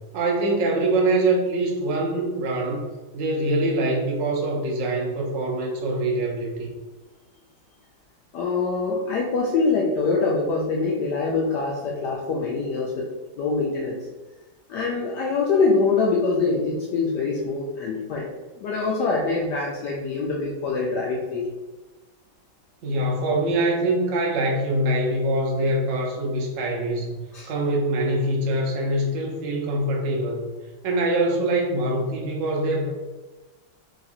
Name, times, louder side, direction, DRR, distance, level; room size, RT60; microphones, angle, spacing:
voice 1, 0.1-2.8 3.1-6.7 22.8-27.2 27.5-30.5 30.8-32.9, right 1 dB, 70° right, -1 dB, 0.7 m, -24 dB
voice 2, 8.3-13.1 13.4-14.0 14.7-18.3 18.6-21.5 27.3-27.5, left 4 dB, 75° left, -2 dB, 1.0 m, -24 dB
3.7 x 2.4 x 4.2 m, 1.2 s
omnidirectional pair, 2.2 m